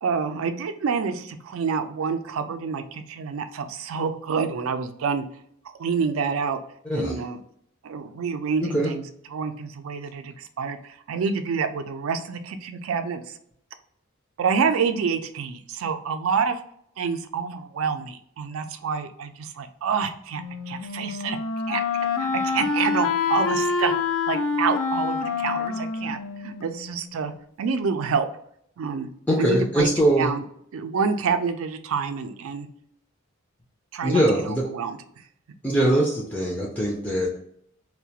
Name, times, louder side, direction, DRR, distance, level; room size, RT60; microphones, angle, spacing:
voice 1, 0.0-5.2 5.8-6.6 6.9-7.4 7.8-9.0 9.3-13.4 14.4-16.6 17.0-21.4 21.7-21.8 22.2-23.9 24.3-27.3 27.6-28.3 28.8-29.1 29.4-29.9 30.2-30.4 30.7-32.7 33.9-35.0, right 6 dB, 85° right, 8 dB, 0.4 m, -27 dB
Wind instrument woodwind instrument, 20.3-27.2, left 5 dB, 80° left, 0.3 m, -27 dB
voice 2, 29.3-30.3 34.0-34.6 35.6-37.4, right 1 dB, 5° left, -4 dB, 0.4 m, -22 dB
2.3 x 2.1 x 2.7 m, 0.68 s
head